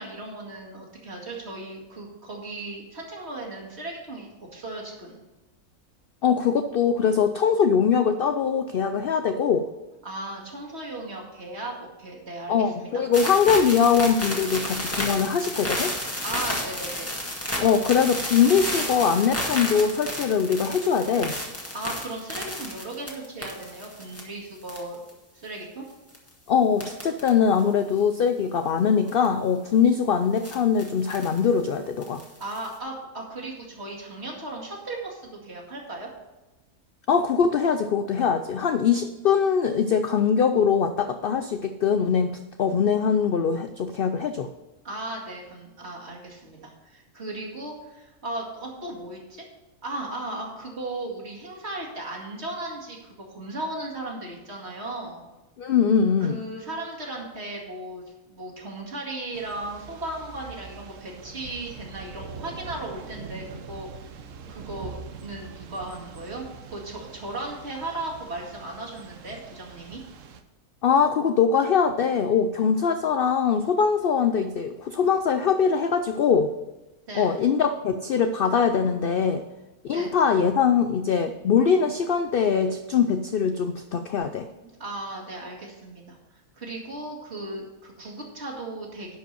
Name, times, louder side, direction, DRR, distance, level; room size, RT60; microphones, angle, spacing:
voice 1, 0.0-5.2 10.0-12.9 16.2-17.1 21.7-25.0 25.3-25.8 32.4-36.1 44.8-49.4 49.8-55.3 56.2-63.9 64.5-70.0 77.1-77.4 79.9-80.2 84.4-86.2 86.5-89.2, right 2 dB, 45° right, -3 dB, 2.5 m, -36 dB
voice 2, 6.2-9.7 12.5-15.9 17.6-21.4 26.5-32.2 37.1-44.5 55.6-56.4 70.8-76.5 77.1-79.4 79.8-84.5, left 6 dB, 75° left, 9 dB, 0.5 m, -22 dB
sound 1, 13.1-24.2 24.6-25.1 26.1-26.3 26.8-27.3 27.6-27.7 29.1-29.3 30.4-31.4 32.0-32.7, left 1 dB, 10° left, 1.7 m, -32 dB
Thunder / Rain, 59.3-70.4, right 6 dB, 65° right, 1.1 m, -43 dB
11.0 x 5.1 x 6.7 m, 1.1 s
omnidirectional pair, 1.5 m